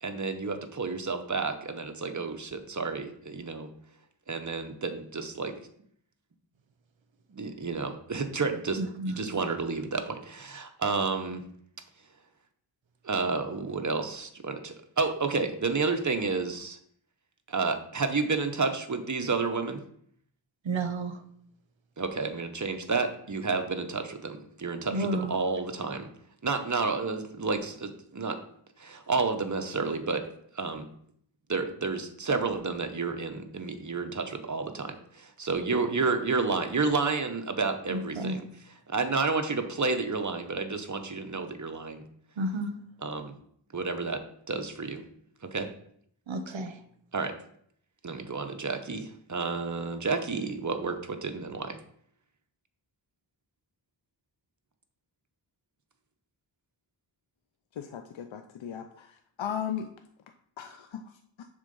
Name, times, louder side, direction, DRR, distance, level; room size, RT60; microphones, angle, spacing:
voice 1, 0.0-3.7 4.3-5.5 7.3-8.8 9.1-11.4 13.0-16.8 17.5-19.8 22.0-26.1 26.4-28.4 28.8-30.2 30.5-30.9 31.5-38.4 38.9-42.0 43.0-43.3 43.7-44.2 44.5-45.0 45.4-45.7 47.1-47.3 48.0-51.8, right 4 dB, 40° right, 6 dB, 1.0 m, -30 dB
voice 2, 8.8-9.2 20.6-21.2 24.9-25.3 37.9-38.5 42.4-42.7 46.3-46.8, right 2 dB, 80° right, 8 dB, 0.9 m, -31 dB
voice 3, 57.8-58.8 59.4-59.9 60.6-61.0, left 8 dB, 80° left, 7 dB, 0.6 m, -35 dB
7.4 x 3.7 x 5.3 m, 0.66 s
wide cardioid pair, 60°, 45 cm